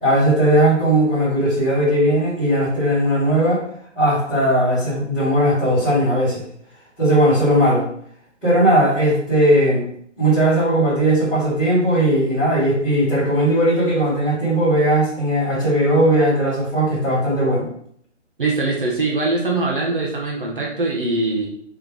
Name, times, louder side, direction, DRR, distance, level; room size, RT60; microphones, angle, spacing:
voice 1, 0.0-3.6 3.9-6.4 7.0-7.8 8.4-9.8 10.2-17.7, right 1 dB, ahead, -20 dB, 1.4 m, -18 dB
voice 2, 18.4-21.5, right 3 dB, 45° right, -2 dB, 0.9 m, -22 dB
4.1 x 3.3 x 3.3 m, 0.64 s
hypercardioid pair, 170°, 37 cm